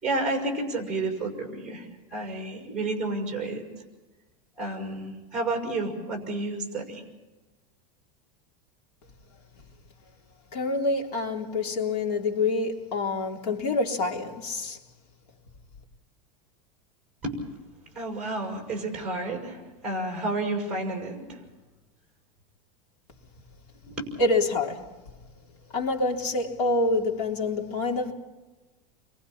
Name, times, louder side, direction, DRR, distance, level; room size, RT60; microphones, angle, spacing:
voice 1, 0.0-3.6 4.6-7.0 17.2-17.4 18.0-21.4 23.8-24.1, right 2 dB, 5° right, 5.6 m, -31 dB
voice 2, 10.5-14.8 24.2-24.8 25.7-28.1, left 3 dB, 85° left, 3.9 m, -26 dB
30.0 x 23.5 x 4.4 m
supercardioid pair, 180°, 20 cm